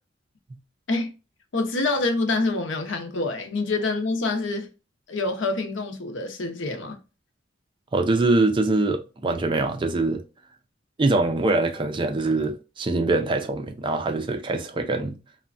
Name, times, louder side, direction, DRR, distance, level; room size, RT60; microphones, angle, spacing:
voice 1, 1.5-4.7 5.1-7.0, left 3 dB, 70° left, 0.7 m, -26 dB
voice 2, 7.9-10.2 11.0-15.2, right 2 dB, 25° right, 0.3 m, -23 dB
3.2 x 2.1 x 2.4 m
head